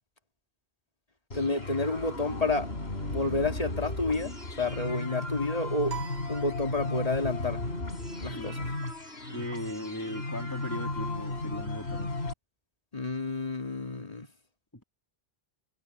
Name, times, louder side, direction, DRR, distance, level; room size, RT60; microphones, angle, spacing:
sound 1, 1.3-12.3, left 2 dB, 85° left, 4.4 m, -35 dB
voice 1, 1.3-2.7 3.1-6.0 6.3-7.6 8.2-8.6 12.9-14.3, left 2 dB, 35° left, 2.3 m, -30 dB
sound 2, 5.9-7.3, right 9 dB, 90° right, 4.6 m, -43 dB
voice 2, 8.3-8.8 9.3-12.2, left 1 dB, 20° left, 3.0 m, -38 dB
omnidirectional pair, 1.1 m